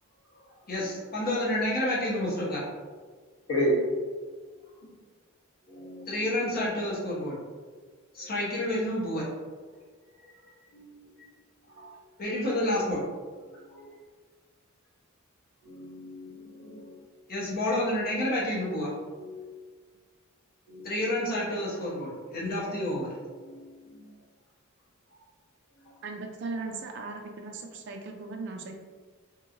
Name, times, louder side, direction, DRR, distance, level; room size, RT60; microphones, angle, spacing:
voice 1, 0.7-2.6 6.1-7.4 8.1-9.2 12.2-13.0 17.3-18.9 20.8-23.1, left 1 dB, 45° left, -5 dB, 0.9 m, -29 dB
voice 2, 3.5-3.8 5.7-6.1 10.7-11.3 11.8-11.9 13.7-13.8 15.6-16.9 19.2-19.4 20.7-20.8 23.4-23.6 23.9-24.0, equal, 70° left, -5 dB, 1.0 m, -33 dB
voice 3, 26.0-28.8, right 3 dB, 55° right, 3 dB, 0.4 m, -38 dB
2.9 x 2.9 x 2.5 m, 1.5 s
head